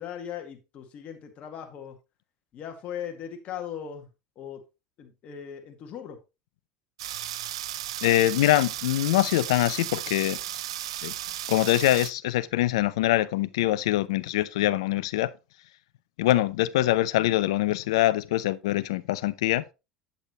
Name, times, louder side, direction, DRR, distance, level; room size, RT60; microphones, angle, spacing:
voice 1, 0.0-2.0 2.5-4.1 4.4-4.6 5.0-6.2, left 8 dB, 50° left, 2.0 m, -38 dB
sound 1, 7.0-12.1, right 12 dB, 85° right, 0.6 m, -35 dB
voice 2, 8.0-10.4 11.0-11.1 11.5-15.3 16.2-19.6, left 15 dB, 80° left, 0.6 m, -24 dB
8.4 x 7.9 x 3.0 m
hypercardioid pair, 85°, 3 cm